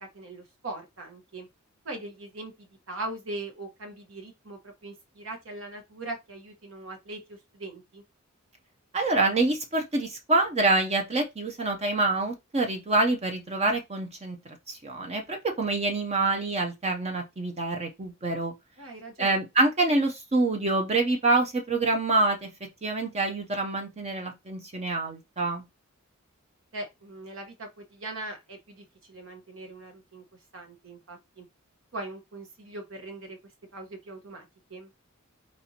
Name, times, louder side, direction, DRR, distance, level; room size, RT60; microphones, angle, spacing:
voice 1, 0.0-1.5 1.8-8.0 18.8-19.4 26.7-30.2 30.5-31.4 31.9-33.4 33.7-34.4 34.7-34.9, right 2 dB, 65° right, 1.2 m, -40 dB
voice 2, 8.9-14.4 14.7-18.5 19.2-22.5 22.8-25.6, right 2 dB, 30° right, 0.7 m, -26 dB
4.3 x 4.3 x 2.8 m
head